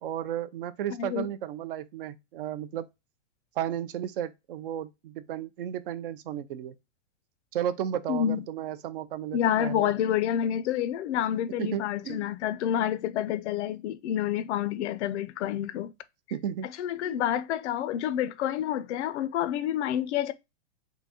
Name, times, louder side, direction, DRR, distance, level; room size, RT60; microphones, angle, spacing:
voice 1, 0.0-2.9 3.6-6.7 7.5-9.9 11.6-12.3 16.3-16.7 17.0-17.2, right 10 dB, 50° right, 0.5 m, -34 dB
voice 2, 0.9-1.3 8.1-8.4 9.3-15.9 16.8-20.3, left 10 dB, 70° left, 0.5 m, -28 dB
3.8 x 2.7 x 3.4 m
hypercardioid pair, 155°, 37 cm